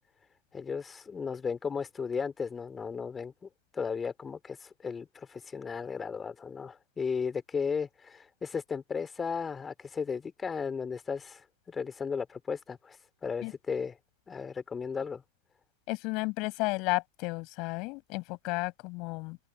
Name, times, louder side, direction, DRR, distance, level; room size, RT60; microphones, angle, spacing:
voice 1, 0.5-3.3 3.7-14.0 14.3-15.2, left 5 dB, 15° left, 3.5 m, -35 dB
voice 2, 15.9-19.4, left 26 dB, 40° left, 5.8 m, -33 dB
figure-of-eight pair, 90°, 0 cm